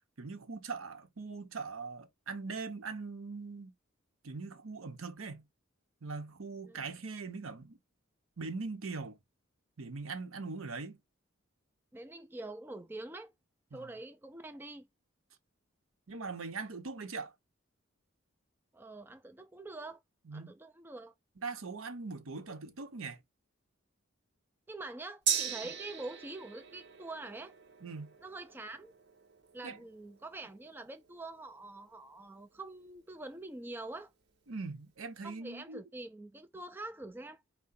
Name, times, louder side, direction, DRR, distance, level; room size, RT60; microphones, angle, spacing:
voice 1, 0.2-3.7 4.2-5.4 6.0-7.8 8.4-9.2 9.8-11.0 13.7-13.8 16.1-17.3 20.3-20.5 21.4-23.2 25.6-25.7 27.8-28.1 29.6-29.8 34.5-35.8, right 4 dB, 80° right, 0.8 m, -41 dB
voice 2, 11.9-13.3 13.7-14.9 18.7-20.0 20.3-21.1 24.7-27.5 28.2-28.9 29.5-34.1 35.2-37.4, right 2 dB, 10° right, 0.3 m, -45 dB
Gong, 25.3-33.0 33.4-33.5, right 8 dB, 55° right, 0.9 m, -40 dB
4.8 x 2.1 x 4.1 m
head